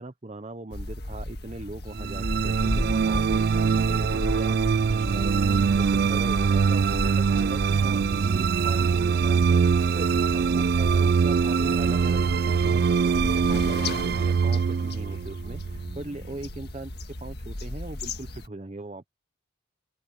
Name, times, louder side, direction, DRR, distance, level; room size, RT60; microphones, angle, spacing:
voice 1, 0.0-5.4 5.7-6.8 7.2-19.1, right 2 dB, 35° right, 0.8 m, -39 dB
sound 1, 0.7-18.5, left 1 dB, 55° left, 1.7 m, -35 dB
sound 2, 1.9-16.3, right 6 dB, 50° right, 0.3 m, -23 dB
open air
head